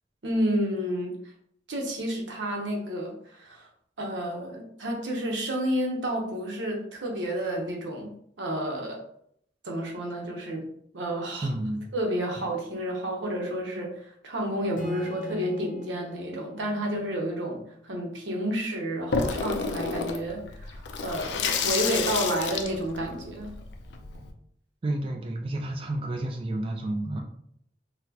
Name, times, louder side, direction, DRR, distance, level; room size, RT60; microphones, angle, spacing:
voice 1, 0.2-1.2 1.7-3.7 4.0-8.1 8.4-9.0 9.6-10.7 10.9-11.5 11.9-17.6 17.8-23.5, equal, 90° right, 1 dB, 0.8 m, -30 dB
voice 2, 11.3-11.9 24.8-27.2, right 1 dB, 30° right, 1 dB, 0.3 m, -30 dB
Acoustic guitar / Strum, 14.8-18.3, left 1 dB, 45° left, 0.7 m, -42 dB
Water tap faucet / Sink (filling or washing), 19.1-24.3, left 4 dB, 70° left, 0.4 m, -30 dB
4.1 x 2.1 x 2.7 m, 0.69 s
head